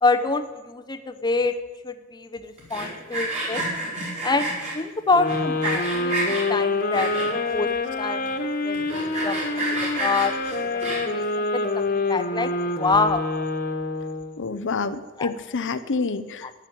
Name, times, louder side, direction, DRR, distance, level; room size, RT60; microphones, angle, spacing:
voice 1, 0.0-1.5 1.8-3.6 4.2-8.4 8.6-9.6 10.0-10.3 10.6-10.8 11.1-12.5 12.8-13.3 15.2-15.3, left 3 dB, 20° left, 8 dB, 0.8 m, -26 dB
Sawing, 2.6-4.7 5.3-6.5 6.9-7.5 8.0-8.1 8.3-8.4 8.7-11.2, right 2 dB, 30° right, 5.4 m, -29 dB
sound 1, 5.1-14.3, left 2 dB, 40° left, 1.5 m, -26 dB
voice 2, 14.4-16.7, left 4 dB, 55° left, 11 dB, 0.7 m, -28 dB
11.5 x 11.5 x 9.2 m, 1.3 s
head